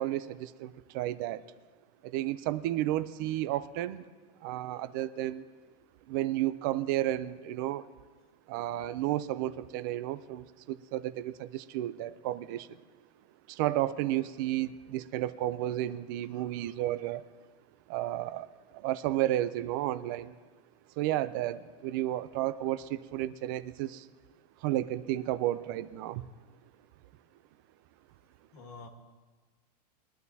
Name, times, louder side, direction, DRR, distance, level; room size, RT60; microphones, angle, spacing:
voice 1, 0.0-1.4 2.0-4.0 4.4-5.5 6.1-7.8 8.5-12.7 13.5-17.2 17.9-18.5 18.7-20.3 21.0-24.1 24.6-26.2, right 14 dB, 30° right, 15 dB, 0.4 m, -32 dB
voice 2, 16.3-16.8 28.5-28.9, left 3 dB, 65° left, 4 dB, 1.8 m, -50 dB
22.0 x 11.5 x 2.7 m, 1.4 s
supercardioid pair, 170°, 21 cm